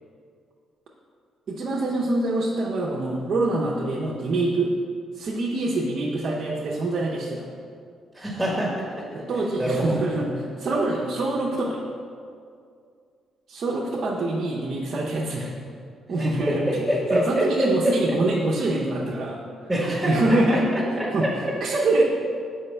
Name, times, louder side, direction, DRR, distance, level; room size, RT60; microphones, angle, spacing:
voice 1, 1.5-4.7 5.1-7.4 9.1-11.8 13.5-15.6 16.1-16.8 17.1-19.7 20.0-20.7 21.1-22.1, right 2 dB, 55° right, -5 dB, 0.7 m, -25 dB
voice 2, 8.1-9.0 9.6-10.0 16.1-17.9 19.7-20.1 20.5-20.6, equal, 5° left, -6 dB, 1.4 m, -25 dB
6.6 x 5.0 x 3.3 m, 2.3 s
cardioid pair, 90°, 0 cm